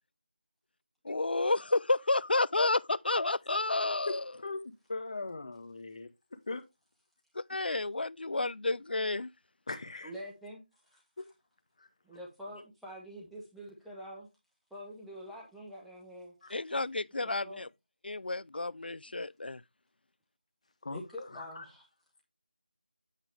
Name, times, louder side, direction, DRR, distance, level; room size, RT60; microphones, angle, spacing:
voice 1, 1.0-4.2 7.4-9.3 16.5-17.7 18.0-19.6, left 2 dB, 80° left, 0.4 m, -30 dB
voice 2, 4.1-6.1 6.5-6.6 9.7-10.1 11.2-11.3 16.4-16.5 20.8-21.0 21.3-21.6, left 3 dB, 40° left, 1.1 m, -39 dB
voice 3, 10.0-10.6 10.9-11.0 12.0-14.3 14.7-16.3 17.1-17.6 20.9-21.8, equal, ahead, 0.8 m, -46 dB
8.3 x 5.8 x 3.2 m
figure-of-eight pair, 170°, 5 cm